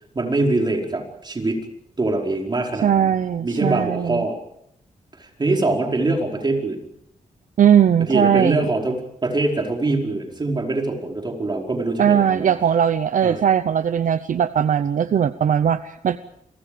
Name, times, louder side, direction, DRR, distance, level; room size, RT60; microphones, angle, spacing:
voice 1, 0.1-1.6 2.0-3.2 3.4-4.3 5.2-6.8 8.1-12.5 13.2-13.4, right 2 dB, 30° right, 1 dB, 4.9 m, -23 dB
voice 2, 2.8-4.3 7.6-8.7 12.0-16.2, right 8 dB, 70° right, 12 dB, 0.8 m, -19 dB
29.5 x 24.0 x 5.1 m, 0.73 s
wide cardioid pair, 115°, 14 cm